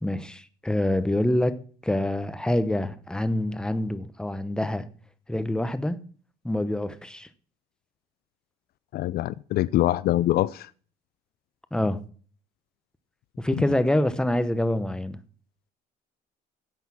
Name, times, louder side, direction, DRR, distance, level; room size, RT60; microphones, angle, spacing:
voice 1, 0.0-4.9 5.3-6.0 6.4-7.3 11.7-12.0 13.4-15.2, left 1 dB, 5° left, 0.9 m, -26 dB
voice 2, 8.9-10.7, left 14 dB, 65° left, 0.5 m, -24 dB
10.5 x 8.2 x 5.8 m
cardioid pair, 110°, 17 cm